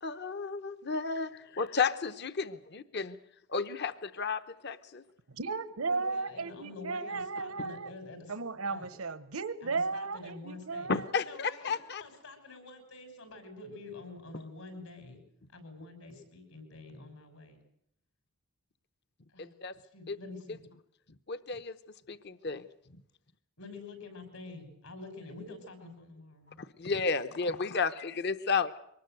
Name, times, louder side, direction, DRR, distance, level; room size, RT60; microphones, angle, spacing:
voice 1, 0.0-3.2 3.5-5.0 10.9-11.2 11.6-12.0 19.4-19.7 20.1-20.2 21.3-21.7 22.1-22.7 26.6-28.8, left 5 dB, 50° left, 13 dB, 0.8 m, -32 dB
voice 2, 5.3-7.9 8.3-11.2, right 4 dB, 80° right, 13 dB, 1.1 m, -35 dB
voice 3, 5.8-8.3 8.7-8.9 9.6-10.9 11.1-15.2 15.5-17.6 19.3-19.5 19.8-20.6 23.6-26.6, left 3 dB, 80° left, 7 dB, 6.4 m, -47 dB
23.5 x 19.5 x 7.9 m, 0.74 s
head